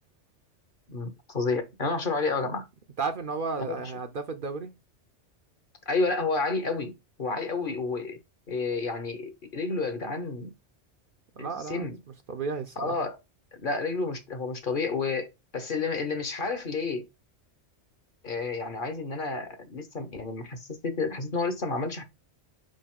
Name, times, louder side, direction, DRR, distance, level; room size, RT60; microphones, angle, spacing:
voice 1, 0.9-2.7 3.6-3.9 5.9-8.2 8.5-10.5 11.4-12.0 12.8-13.2 13.6-17.1 18.2-22.0, left 3 dB, 50° left, 1.1 m, -30 dB
voice 2, 3.0-4.7 11.4-11.9 12.3-13.0, right 4 dB, 55° right, 0.7 m, -33 dB
5.4 x 4.7 x 3.7 m
omnidirectional pair, 1.2 m